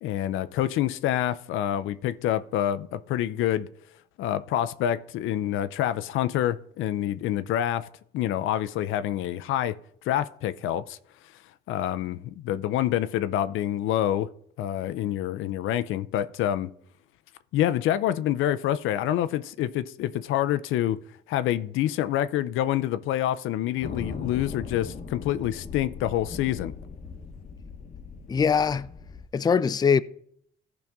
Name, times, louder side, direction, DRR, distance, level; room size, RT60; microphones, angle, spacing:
voice 1, 0.0-3.7 4.2-7.9 8.1-9.8 10.1-11.0 11.7-14.3 14.6-16.7 17.5-21.0 21.3-26.7, left 12 dB, 85° left, 0.5 m, -27 dB
sound 1, 23.8-29.2, left 4 dB, 35° left, 0.9 m, -39 dB
voice 2, 28.3-28.9 29.3-30.0, left 6 dB, 20° left, 0.3 m, -22 dB
15.0 x 5.2 x 3.5 m
cardioid pair, 90°, 20 cm